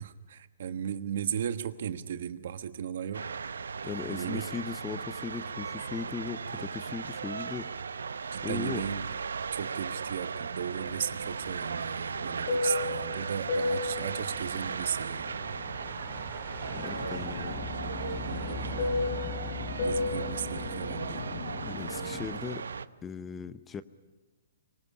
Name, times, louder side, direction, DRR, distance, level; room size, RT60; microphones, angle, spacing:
voice 1, 0.0-3.3 4.1-4.7 6.5-6.7 8.3-9.0 9.5-15.3 18.2-18.9 19.8-21.2, right 8 dB, 65° right, 11 dB, 1.3 m, -36 dB
sound 1, 3.1-22.9, right 5 dB, 90° right, 0.8 m, -37 dB
voice 2, 3.8-7.7 8.4-8.8 16.8-17.7 21.6-22.6 23.0-23.8, left 6 dB, 15° left, 14 dB, 0.7 m, -38 dB
Fixed-wing aircraft airplane, 10.9-16.2 16.6-22.4, left 3 dB, 45° left, 3.1 m, -34 dB
Truck, 13.5-21.7, left 1 dB, 5° right, 2.5 m, -44 dB
24.5 x 18.0 x 9.8 m, 1.2 s
hypercardioid pair, 145°, 0 cm